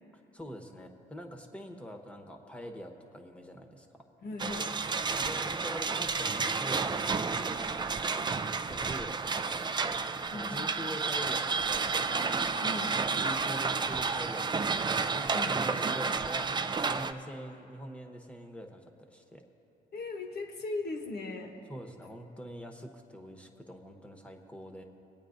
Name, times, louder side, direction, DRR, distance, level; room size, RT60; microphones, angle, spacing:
voice 1, 0.3-4.1 5.2-8.3 8.6-10.0 10.3-12.3 12.6-19.4 21.7-24.8, equal, 5° left, 3 dB, 1.1 m, -45 dB
voice 2, 4.2-4.8 10.3-10.6 12.6-13.0 15.3-15.6 19.9-21.6, left 2 dB, 55° left, 4 dB, 1.2 m, -38 dB
sound 1, 4.4-17.1, right 4 dB, 20° right, 0.4 m, -31 dB
24.0 x 8.9 x 2.6 m, 2.9 s
cardioid pair, 90°, 20 cm